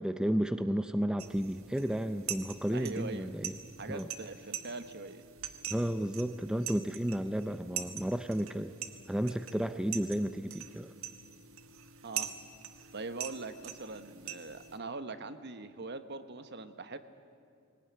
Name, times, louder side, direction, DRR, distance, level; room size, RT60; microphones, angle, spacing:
voice 1, 0.0-3.6 3.9-4.1 5.7-8.7 9.1-10.9, equal, 5° right, 10 dB, 0.5 m, -32 dB
sound 1, 1.2-14.8, right 9 dB, 75° right, 1.3 m, -44 dB
voice 2, 2.7-3.3 3.8-5.2 12.0-12.3 12.9-17.0, right 3 dB, 55° right, 10 dB, 1.1 m, -42 dB
20.0 x 18.5 x 9.7 m, 2.4 s
head